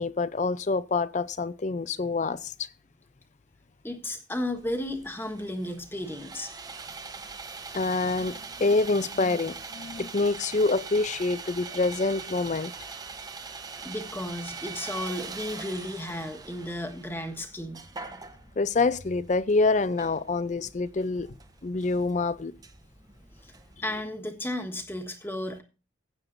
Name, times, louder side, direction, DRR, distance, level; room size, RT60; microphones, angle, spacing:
voice 1, 0.0-2.7 7.7-12.7 18.6-21.4 21.6-22.5, left 3 dB, 35° left, 0.5 m, -26 dB
voice 2, 3.8-6.5 13.8-17.8 23.4-23.5 23.8-25.6, left 1 dB, 10° left, 1.4 m, -34 dB
Sawing, 4.6-24.0, right 4 dB, 20° right, 0.8 m, -43 dB
16.0 x 9.1 x 2.6 m
head